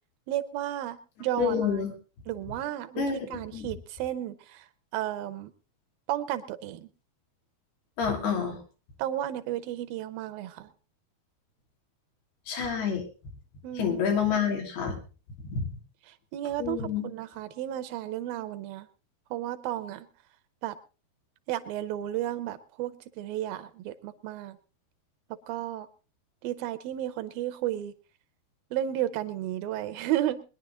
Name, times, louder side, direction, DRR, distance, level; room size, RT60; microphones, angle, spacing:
voice 1, 0.3-1.8 2.3-4.7 4.9-5.5 6.1-6.9 9.0-10.7 13.6-14.0 16.1-18.9 19.3-20.1 20.6-20.8 21.5-24.6 25.5-25.9 26.4-27.9 28.7-30.4, right 13 dB, 75° right, 11 dB, 2.4 m, -33 dB
voice 2, 1.4-1.9 3.0-3.3 3.5-3.7 8.0-8.6 12.5-13.0 13.8-15.0 15.5-15.7 16.6-17.0, left 7 dB, 80° left, 2 dB, 4.7 m, -28 dB
22.0 x 10.5 x 3.8 m, 0.34 s
omnidirectional pair, 4.5 m